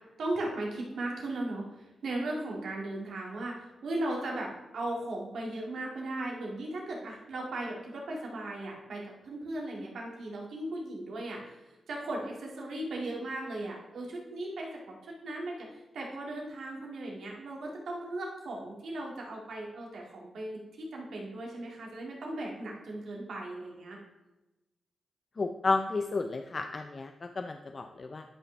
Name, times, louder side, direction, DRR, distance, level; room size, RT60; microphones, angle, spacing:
voice 1, 0.2-11.6 11.9-24.0, right 1 dB, 75° right, -2 dB, 2.2 m, -37 dB
voice 2, 25.4-28.2, left 3 dB, 50° left, 6 dB, 0.5 m, -32 dB
11.0 x 5.6 x 3.4 m, 1.0 s
supercardioid pair, 45°, 0 cm